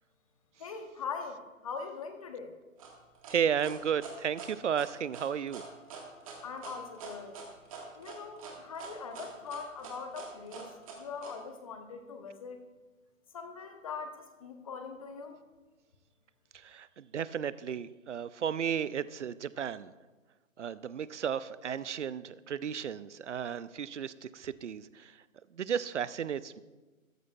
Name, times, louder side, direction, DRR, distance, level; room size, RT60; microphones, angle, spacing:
voice 1, 0.6-2.5 6.4-7.4 8.0-10.7 11.0-12.6 13.3-15.4, left 5 dB, 25° left, 6 dB, 0.8 m, -41 dB
sound 1, 2.8-11.3, right 5 dB, 25° right, 1.5 m, -45 dB
voice 2, 3.3-5.6 16.5-19.9 20.6-25.1 25.5-26.6, right 8 dB, 60° right, 17 dB, 0.5 m, -34 dB
13.5 x 13.5 x 2.3 m, 1.2 s
figure-of-eight pair, 145°, 41 cm